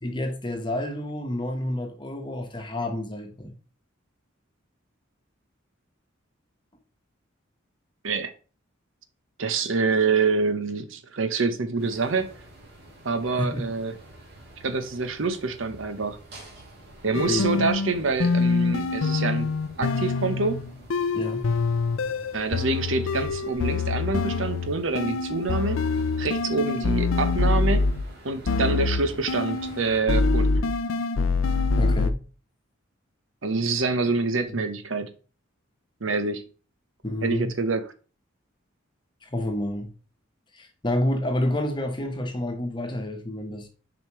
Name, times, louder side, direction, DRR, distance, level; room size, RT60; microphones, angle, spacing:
voice 1, 0.0-3.5 13.4-13.7 17.2-17.6 21.1-21.5 31.8-32.2 34.5-34.6 37.0-37.5 39.2-39.9 40.5-43.7, left 1 dB, 25° left, 1.2 m, -29 dB
voice 2, 9.4-12.3 13.0-13.9 14.6-16.2 17.0-19.5 19.8-20.6 22.3-25.8 26.2-27.8 28.2-30.7 33.4-35.1 36.0-36.4 37.2-37.8, right 4 dB, 75° right, 0.9 m, -26 dB
sound 1, 11.8-30.0, right 1 dB, 55° right, 2.7 m, -48 dB
sound 2, 17.1-28.1 28.5-29.8 30.1-32.1, left 3 dB, 85° left, 0.5 m, -25 dB
7.0 x 5.0 x 3.1 m
head